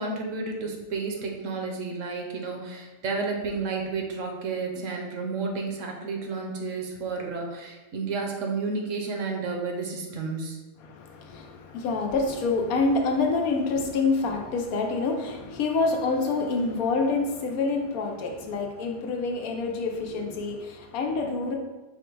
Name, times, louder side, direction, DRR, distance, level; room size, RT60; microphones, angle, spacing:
voice 1, 0.0-10.6, right 4 dB, 70° right, 1 dB, 1.0 m, -31 dB
voice 2, 10.8-21.6, left 3 dB, 90° left, 3 dB, 1.1 m, -27 dB
4.8 x 2.1 x 4.4 m, 1.2 s
omnidirectional pair, 1.5 m